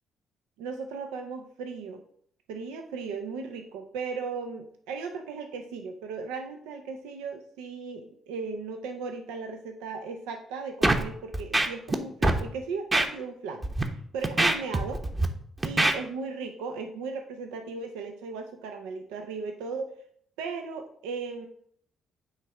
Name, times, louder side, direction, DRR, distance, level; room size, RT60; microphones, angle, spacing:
voice 1, 0.6-2.0 2.5-15.0 15.6-19.9 20.4-21.5, right 4 dB, 85° right, 5 dB, 0.5 m, -36 dB
Scratching (performance technique), 10.8-11.0 11.3-12.0 12.2-12.4 12.9-13.1 13.6-13.8 14.2-15.3 15.6-15.9, right 2 dB, 25° right, 1.0 m, -23 dB
8.2 x 3.2 x 4.8 m, 0.63 s
hypercardioid pair, 55°, 0 cm